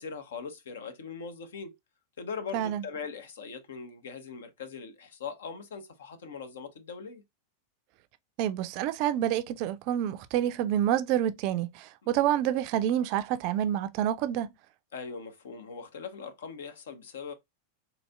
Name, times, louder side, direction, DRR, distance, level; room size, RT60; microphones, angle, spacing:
voice 1, 0.0-1.8 2.2-7.2 14.9-17.3, left 5 dB, 60° left, 0.7 m, -40 dB
voice 2, 2.5-2.8 8.4-14.5, right 11 dB, 45° right, 0.4 m, -28 dB
4.0 x 2.7 x 2.2 m
figure-of-eight pair, 90°, 0 cm